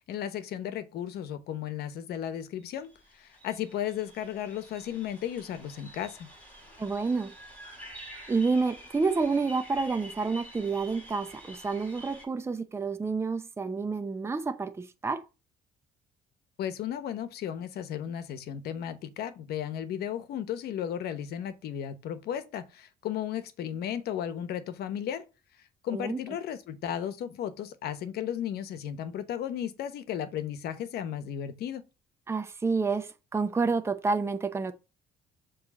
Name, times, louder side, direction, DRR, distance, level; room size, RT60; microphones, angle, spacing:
voice 1, 0.1-6.3 16.6-25.2 25.8-31.8, left 10 dB, 70° left, 1.0 m, -35 dB
sound 1, 2.6-2.7 2.9-12.2, equal, 10° left, 4.6 m, -49 dB
voice 2, 6.8-7.3 8.3-15.2 25.9-26.2 32.3-34.7, right 4 dB, 15° right, 0.7 m, -29 dB
7.2 x 3.2 x 5.3 m
cardioid pair, 110°, 17 cm